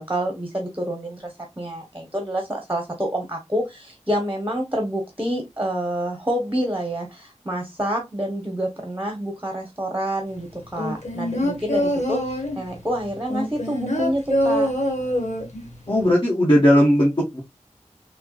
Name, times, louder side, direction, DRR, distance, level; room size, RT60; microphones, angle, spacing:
voice 1, 0.0-14.7, right 1 dB, 15° right, 2 dB, 0.8 m, -27 dB
sound 1, 10.8-12.7 13.3-15.7 16.0-16.1, equal, 70° left, 1.2 m, -24 dB
voice 2, 15.9-17.4, equal, 40° left, -5 dB, 1.2 m, -17 dB
4.4 x 2.1 x 2.3 m, 0.19 s
wide cardioid pair, 55°, 12 cm